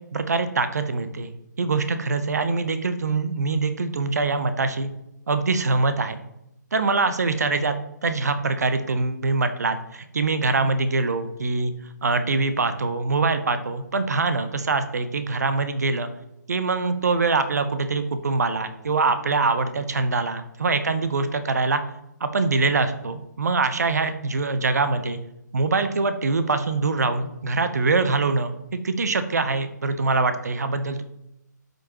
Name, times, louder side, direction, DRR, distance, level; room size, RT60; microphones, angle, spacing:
voice 1, 0.1-4.9 5.3-6.2 6.7-7.7 8.0-11.7 12.0-16.1 16.5-21.8 22.2-25.2 25.5-31.0, right 3 dB, 55° right, 10 dB, 0.8 m, -24 dB
12.5 x 5.4 x 2.9 m, 0.84 s
figure-of-eight pair, 140°, 10 cm